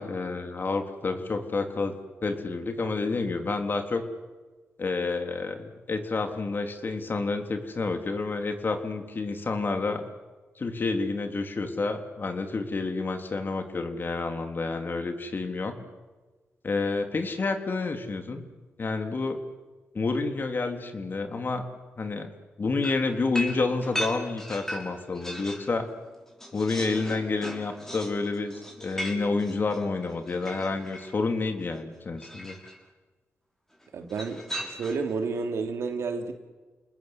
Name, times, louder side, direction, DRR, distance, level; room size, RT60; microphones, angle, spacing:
voice 1, 0.0-2.0 2.2-4.0 4.8-10.0 10.6-15.8 16.6-18.4 18.8-19.4 19.9-21.6 22.0-22.3 22.6-25.9 26.5-32.6, left 3 dB, 45° left, 6 dB, 3.6 m, -29 dB
sound 1, 22.8-25.7 26.1-31.1 32.2-32.8 34.1-35.1, equal, 10° left, 6.4 m, -37 dB
voice 2, 33.9-36.3, right 4 dB, 80° right, 5 dB, 3.1 m, -31 dB
29.0 x 20.5 x 8.0 m, 1.3 s
cardioid pair, 70°, 5 cm